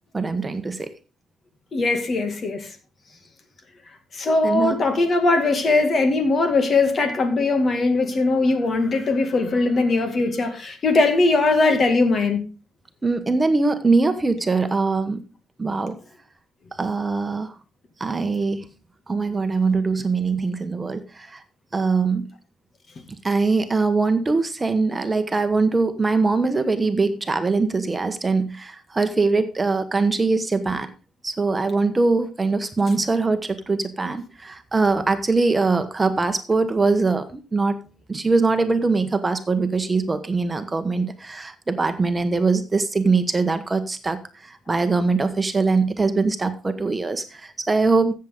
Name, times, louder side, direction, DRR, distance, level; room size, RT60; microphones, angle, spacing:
voice 1, 0.1-0.9 4.4-4.8 13.0-15.2 15.6-16.0 16.8-17.5 18.0-18.7 19.1-21.4 21.7-22.3 23.1-30.9 31.2-37.8 38.1-48.1, right 3 dB, 25° right, 1.1 m, -22 dB
voice 2, 1.7-2.7 4.1-12.4, left 3 dB, 45° left, 2.1 m, -20 dB
13.5 x 7.6 x 3.7 m
cardioid pair, 90°, 0 cm